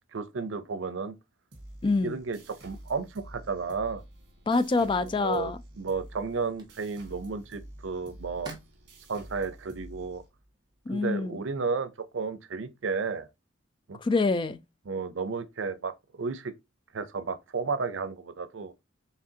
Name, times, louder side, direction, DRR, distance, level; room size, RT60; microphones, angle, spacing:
voice 1, 0.1-1.1 1.8-4.0 5.0-8.5 9.1-10.2 10.9-13.3 13.9-14.0 14.9-16.5 16.9-18.7, right 4 dB, 85° right, 0.6 m, -33 dB
sound 1, 1.5-10.7, right 1 dB, 60° right, 1.4 m, -49 dB
voice 2, 1.8-2.2 4.5-5.6 10.9-11.4 14.0-14.6, left 3 dB, 25° left, 0.3 m, -26 dB
sound 2, 5.6-11.8, right 2 dB, 25° right, 1.2 m, -53 dB
4.7 x 3.4 x 2.8 m
head